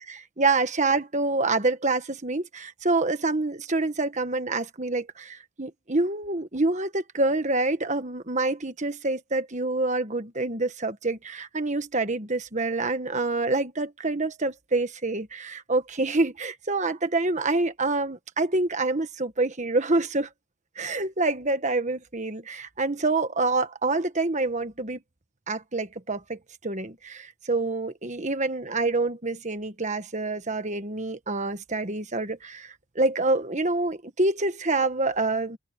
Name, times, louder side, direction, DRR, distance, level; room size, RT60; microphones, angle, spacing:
voice 1, 0.4-20.3 20.8-25.0 25.5-35.6, right 2 dB, 30° right, 1.4 m, -27 dB
head